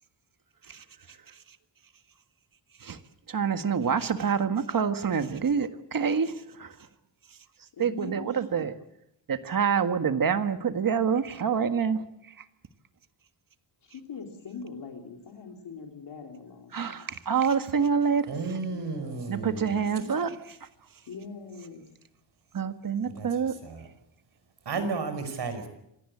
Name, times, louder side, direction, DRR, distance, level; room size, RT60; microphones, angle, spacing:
voice 1, 3.3-6.8 7.8-8.7 9.3-12.0 16.7-18.3 19.3-20.3 22.5-23.5, right 6 dB, 45° right, 1.7 m, -27 dB
voice 2, 7.7-8.4 13.8-17.2 18.6-20.3 21.1-21.8, left 5 dB, 65° left, 3.7 m, -43 dB
voice 3, 18.3-19.7 23.0-23.3 23.6-23.9 24.7-25.7, right 4 dB, 65° right, 5.4 m, -33 dB
26.5 x 17.5 x 8.6 m
wide cardioid pair, 120°, 45 cm